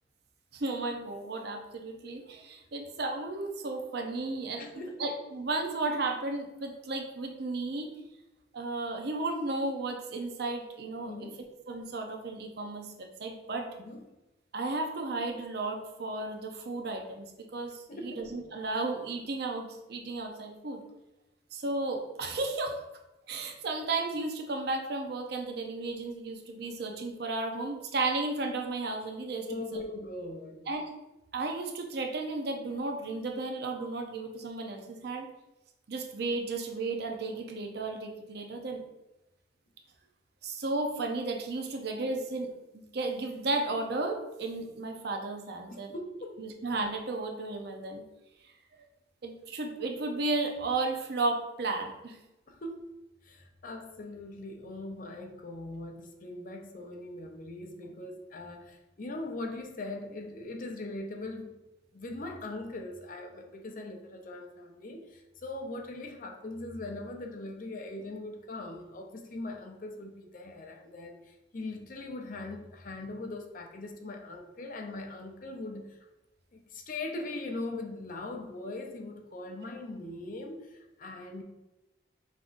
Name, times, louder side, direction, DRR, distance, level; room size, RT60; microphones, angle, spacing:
voice 1, 0.5-4.6 5.0-7.9 8.5-11.3 11.7-13.7 14.5-20.8 21.5-22.8 23.3-29.6 30.7-30.9 31.3-35.3 35.9-38.8 40.4-45.9 46.4-48.0 49.2-52.2, right 3 dB, 60° right, 3 dB, 0.6 m, -34 dB
voice 2, 4.6-5.1 11.1-11.4 13.8-14.1 17.9-18.3 29.5-30.7 45.7-46.4 52.5-52.9 53.2-61.5 61.9-76.1 76.5-81.4, left 2 dB, 45° left, 4 dB, 0.5 m, -40 dB
5.5 x 3.6 x 2.5 m, 0.97 s
head